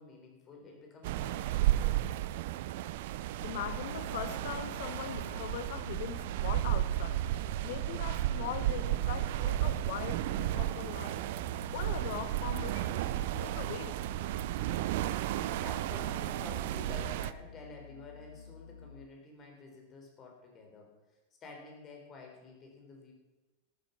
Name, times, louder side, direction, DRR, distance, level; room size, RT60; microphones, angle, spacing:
voice 1, 0.0-2.1 11.4-11.7 15.5-20.9 21.4-23.1, left 4 dB, 30° left, 1 dB, 3.7 m, -50 dB
sound 1, 1.0-17.3, right 14 dB, 50° right, 0.5 m, -33 dB
sound 2, 3.4-19.1, left 5 dB, 70° left, 0.5 m, -50 dB
voice 2, 3.4-7.2 7.6-11.2 11.7-14.0, left 10 dB, 50° left, 14 dB, 0.8 m, -41 dB
13.0 x 9.0 x 5.8 m, 1.1 s
figure-of-eight pair, 90°, 0 cm